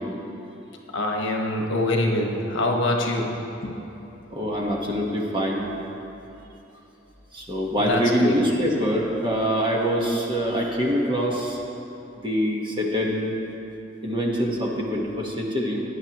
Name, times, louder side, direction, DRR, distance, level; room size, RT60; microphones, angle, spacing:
voice 1, 0.9-3.3 3.6-3.8 7.8-8.3, left 1 dB, 70° left, 1 dB, 1.2 m, -24 dB
voice 2, 4.3-5.7 7.3-11.6 12.2-13.3 14.0-15.8, equal, 25° right, -2 dB, 1.3 m, -24 dB
17.0 x 9.8 x 3.0 m, 3.0 s
head